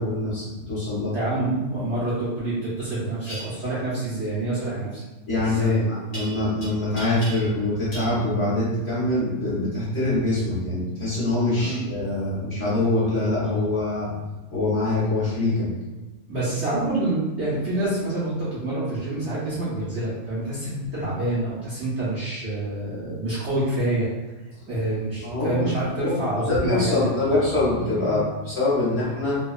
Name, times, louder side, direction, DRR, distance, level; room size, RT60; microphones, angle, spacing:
voice 1, 0.0-1.1 5.3-14.1 14.5-15.7 25.2-25.7 26.0-26.1 26.5-29.4, left 2 dB, 50° left, -9 dB, 1.0 m, -24 dB
voice 2, 1.1-5.0 5.4-5.9 11.6-11.9 16.3-24.1 24.7-27.4, right 2 dB, 55° right, -10 dB, 0.9 m, -27 dB
sound 1, 3.2-3.4 6.1-6.7 7.0-7.6 7.9-8.1, right 1 dB, 85° left, 0.3 m, -37 dB
2.8 x 2.2 x 2.3 m, 1.2 s
omnidirectional pair, 1.7 m